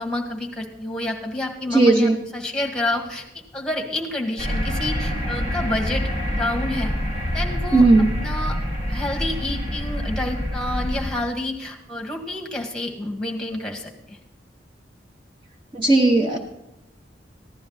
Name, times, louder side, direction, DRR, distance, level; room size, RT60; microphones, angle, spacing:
voice 1, 0.0-3.2 3.5-6.1 6.4-6.9 7.3-7.9 8.2-8.6 8.9-14.2, left 1 dB, 5° left, 1 dB, 1.7 m, -28 dB
voice 2, 1.7-2.2 7.7-8.1 15.7-16.4, right 2 dB, 25° right, 3 dB, 0.8 m, -16 dB
sound 1, 4.4-11.1, equal, 50° right, 4.8 m, -26 dB
15.0 x 11.0 x 4.0 m, 0.91 s
head